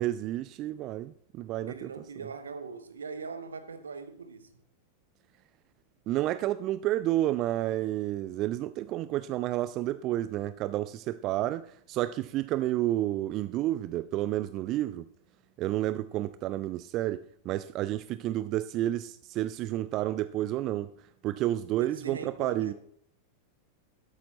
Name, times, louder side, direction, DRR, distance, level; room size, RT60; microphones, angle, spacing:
voice 1, 0.0-1.9 6.1-15.1 15.6-17.2 17.5-20.9 21.2-22.7, right 14 dB, 35° right, 0.4 m, -30 dB
voice 2, 1.7-4.5 21.8-22.7, right 5 dB, 70° right, 1.1 m, -41 dB
12.0 x 8.5 x 4.0 m
figure-of-eight pair, 90°, 0 cm